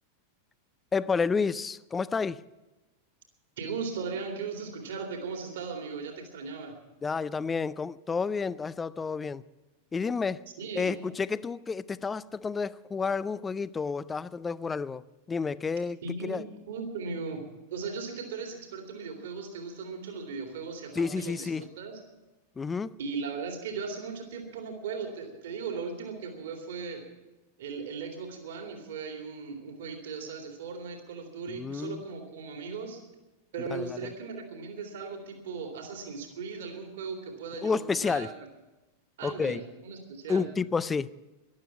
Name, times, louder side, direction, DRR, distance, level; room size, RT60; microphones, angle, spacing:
voice 1, 0.9-2.4 7.0-9.4 9.9-10.4 10.8-15.0 15.3-16.4 20.9-21.6 22.6-22.9 31.5-32.0 33.7-34.1 37.6-38.3 39.2-39.6 40.3-41.1, left 5 dB, 15° left, 0.4 m, -30 dB
voice 2, 3.6-6.8 10.6-11.1 16.0-22.0 23.0-27.0 27.6-33.0 33.5-38.5 39.2-40.5, right 5 dB, 60° right, 2.5 m, -38 dB
13.5 x 12.0 x 8.3 m
figure-of-eight pair, 90°, 0 cm